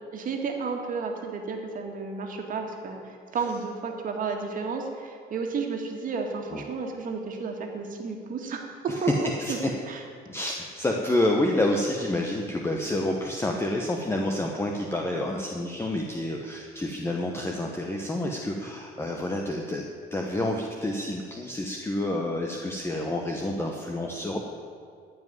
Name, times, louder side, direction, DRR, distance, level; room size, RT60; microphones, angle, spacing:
voice 1, 0.1-8.7 9.0-9.6 9.9-10.0, right 4 dB, 55° right, 2 dB, 2.0 m, -32 dB
voice 2, 9.4-9.7 10.3-19.8 20.1-24.4, left 1 dB, 15° left, 1 dB, 1.1 m, -28 dB
14.5 x 5.4 x 9.6 m, 2.2 s
cardioid pair, 110°, 17 cm